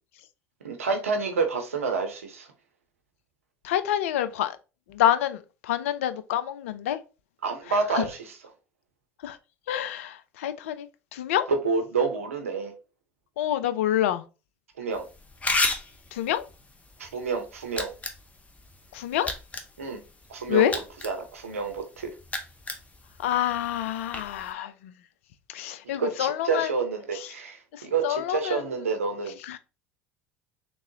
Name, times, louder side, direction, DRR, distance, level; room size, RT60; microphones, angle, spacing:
voice 1, 0.6-2.5 7.4-8.2 11.5-12.7 14.8-15.1 17.0-17.9 19.8-20.0 20.3-20.7 21.0-22.1 25.9-29.4, right 4 dB, 85° right, 0.7 m, -28 dB
voice 2, 3.6-4.6 4.9-7.0 7.7-8.1 9.2-9.4 9.7-11.5 13.4-14.2 16.1-16.4 18.9-19.3 20.5-20.7 23.2-24.9 25.5-26.7 27.1-27.3 27.7-28.6 29.4-29.6, left 12 dB, 70° left, 0.4 m, -27 dB
sound 1, 14.9-24.5, left 3 dB, 20° left, 0.8 m, -35 dB
3.7 x 3.0 x 2.7 m
hypercardioid pair, 70°, 7 cm